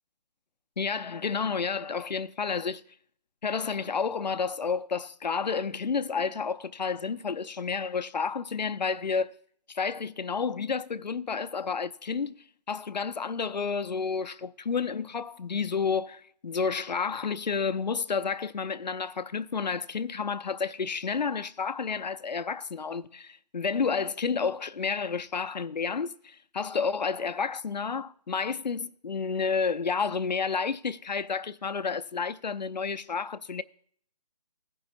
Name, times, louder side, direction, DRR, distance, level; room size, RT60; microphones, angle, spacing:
voice 1, 0.8-2.8 3.4-9.3 9.7-12.3 12.7-33.6, left 5 dB, 90° left, 0.5 m, -30 dB
15.0 x 5.4 x 4.2 m
figure-of-eight pair, 155°, 21 cm